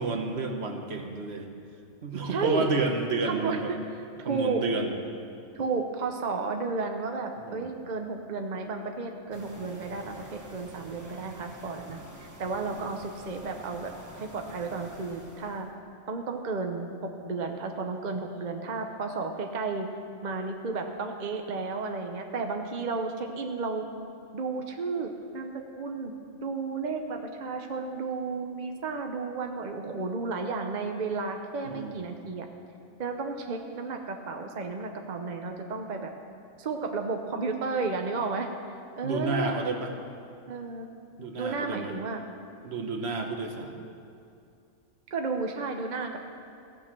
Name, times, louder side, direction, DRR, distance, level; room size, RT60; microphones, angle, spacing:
voice 1, 0.0-1.5 2.0-3.7 4.2-5.0 7.4-7.7 12.6-12.7 31.6-32.1 39.0-39.9 41.2-41.9 42.6-43.9, right 3 dB, 60° right, 4 dB, 1.3 m, -31 dB
voice 2, 2.2-2.7 3.2-3.6 4.2-4.6 5.5-15.7 16.1-19.9 20.2-23.9 24.3-26.1 26.4-32.5 33.0-36.1 36.6-38.5 39.0-39.8 40.5-40.9 41.3-42.2 45.1-46.2, right 4 dB, 40° right, 4 dB, 0.8 m, -33 dB
sound 1, 9.3-15.7, right 1 dB, 15° right, 1.1 m, -48 dB
16.0 x 6.4 x 7.4 m, 2.5 s
omnidirectional pair, 1.3 m